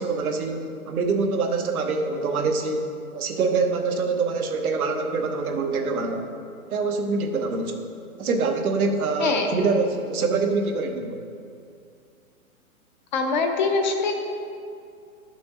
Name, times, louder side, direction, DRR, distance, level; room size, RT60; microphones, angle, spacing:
voice 1, 0.0-2.9 3.1-6.3 6.7-7.8 8.2-11.2, right 4 dB, 75° right, 4 dB, 1.1 m, -25 dB
voice 2, 13.1-14.1, left 4 dB, 35° left, 4 dB, 0.6 m, -23 dB
11.5 x 6.1 x 3.0 m, 2.4 s
hypercardioid pair, 145°, 43 cm